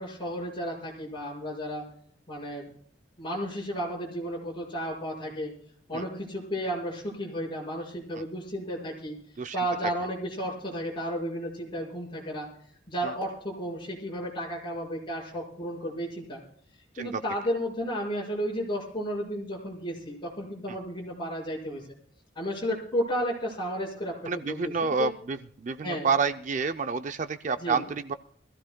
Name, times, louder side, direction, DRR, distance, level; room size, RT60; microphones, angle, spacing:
voice 1, 0.0-1.8 2.3-2.7 3.2-5.5 5.9-9.2 9.5-12.5 12.9-16.4 17.0-21.8 22.4-25.1 25.8-26.1 27.6-27.8, equal, 25° left, -3 dB, 5.4 m, -33 dB
voice 2, 24.3-28.1, right 5 dB, 40° right, 10 dB, 0.4 m, -29 dB
24.5 x 15.0 x 2.2 m, 0.64 s
head